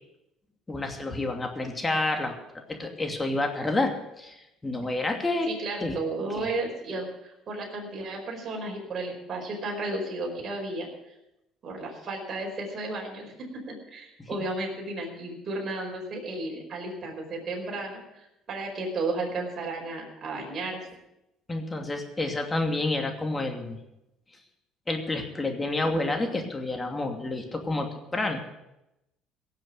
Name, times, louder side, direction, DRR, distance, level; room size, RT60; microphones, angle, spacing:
voice 1, 0.7-2.3 2.7-5.5 5.8-5.9 6.3-6.5 21.5-23.8 24.9-28.4, left 2 dB, 20° left, 4 dB, 2.7 m, -29 dB
voice 2, 5.4-10.9 11.6-18.0 18.5-20.9, right 2 dB, 40° right, -2 dB, 5.0 m, -33 dB
16.5 x 7.6 x 8.2 m, 0.89 s
supercardioid pair, 80°, 0 cm